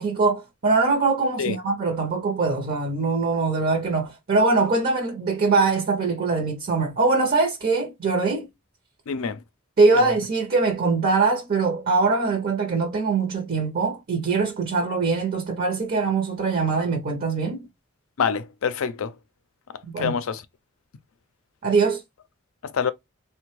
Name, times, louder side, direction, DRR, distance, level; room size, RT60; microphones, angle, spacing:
voice 1, 0.0-8.5 9.8-17.7 19.9-20.2 21.6-22.0, right 4 dB, 45° right, 0.6 m, -22 dB
voice 2, 9.1-9.4 18.2-19.1 20.0-20.4 22.6-22.9, left 6 dB, 70° left, 0.4 m, -26 dB
3.4 x 2.1 x 3.0 m
head